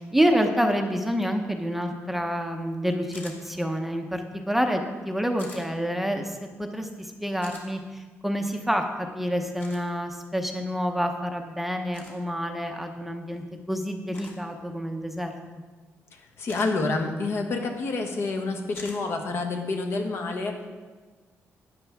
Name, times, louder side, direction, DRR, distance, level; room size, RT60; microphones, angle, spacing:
voice 1, 0.0-4.2 4.5-15.3, equal, 5° right, 4 dB, 0.7 m, -28 dB
sound 1, 3.1-3.4 5.4-5.6 7.4-7.6 9.6-9.8 11.9-12.2 14.1-14.4 16.5-16.7 18.7-19.0, left 2 dB, 40° left, 2.3 m, -44 dB
voice 2, 16.4-20.6, left 3 dB, 55° left, 3 dB, 1.4 m, -28 dB
12.5 x 9.2 x 3.5 m, 1.4 s
cardioid pair, 125°, 5 cm